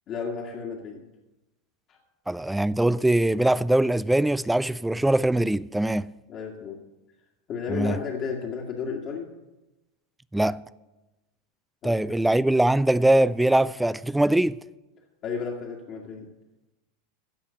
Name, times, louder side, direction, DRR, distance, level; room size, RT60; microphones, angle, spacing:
voice 1, 0.1-1.0 1.9-2.0 6.3-6.8 7.5-9.3 11.8-12.2 15.2-16.3, left 5 dB, 40° left, 1.9 m, -33 dB
voice 2, 2.3-6.1 7.7-8.0 10.3-10.6 11.8-14.6, right 1 dB, 5° right, 0.4 m, -22 dB
16.0 x 5.7 x 8.4 m
hypercardioid pair, 90°, 0 cm